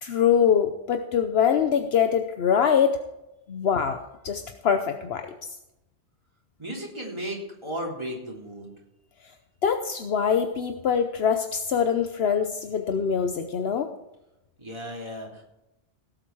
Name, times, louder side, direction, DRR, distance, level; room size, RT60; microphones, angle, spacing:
voice 1, 0.0-3.0 3.5-5.3 9.6-13.9, left 7 dB, 70° left, 7 dB, 1.0 m, -23 dB
voice 2, 6.6-8.7 14.6-15.4, equal, 25° right, -3 dB, 3.3 m, -35 dB
17.5 x 7.9 x 4.7 m, 0.91 s
omnidirectional pair, 1.1 m